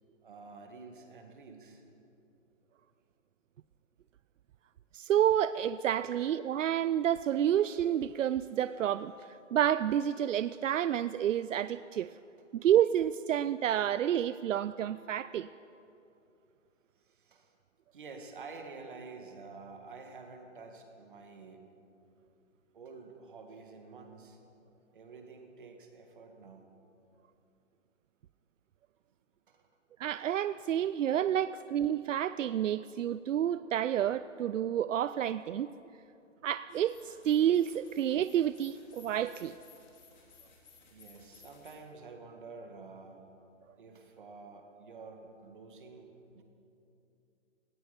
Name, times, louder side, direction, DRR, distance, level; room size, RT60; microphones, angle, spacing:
voice 1, 0.2-1.8 6.1-6.2 17.0-17.5 17.9-21.6 22.7-24.4 24.9-26.7 29.5-29.6 30.7-30.9 40.2-40.3 40.9-43.2 43.8-46.4, right 4 dB, 40° right, 1.9 m, -49 dB
voice 2, 4.9-12.1 12.5-15.5 30.0-35.7 36.4-39.5, right 10 dB, 80° right, 0.5 m, -29 dB
sound 1, 36.7-41.7, left 5 dB, 35° left, 2.6 m, -59 dB
18.5 x 14.0 x 5.2 m
hypercardioid pair, 175°, 38 cm